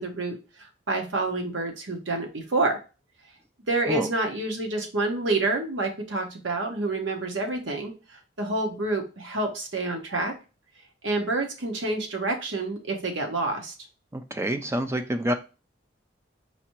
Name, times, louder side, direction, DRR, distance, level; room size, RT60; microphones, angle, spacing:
voice 1, 0.0-2.8 3.7-7.9 8.4-10.3 11.0-13.7, right 2 dB, 90° right, 2 dB, 1.1 m, -28 dB
voice 2, 14.1-15.3, right 1 dB, 15° right, 8 dB, 0.3 m, -27 dB
4.9 x 2.8 x 3.0 m, 0.31 s
head